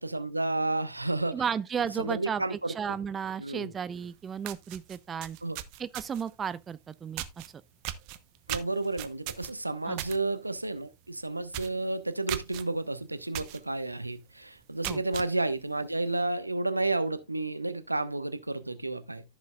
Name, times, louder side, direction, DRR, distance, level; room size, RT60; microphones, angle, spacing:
voice 1, 0.0-1.4 2.0-3.0 3.4-3.7 5.4-5.6 8.5-19.2, right 2 dB, 85° right, 0.8 m, -31 dB
voice 2, 1.3-5.4 5.8-7.5 9.9-10.0 14.9-15.0, right 7 dB, 20° right, 0.4 m, -34 dB
sound 1, 4.0-4.1 4.4-6.3 7.2-7.5 7.8-10.2 10.5-10.8 11.1-11.2 11.5-11.8 12.3-12.6 13.3-13.6 14.0-14.1 14.6-15.3, right 15 dB, 45° right, 0.9 m, -37 dB
14.5 x 6.2 x 2.4 m
figure-of-eight pair, 90°, 0 cm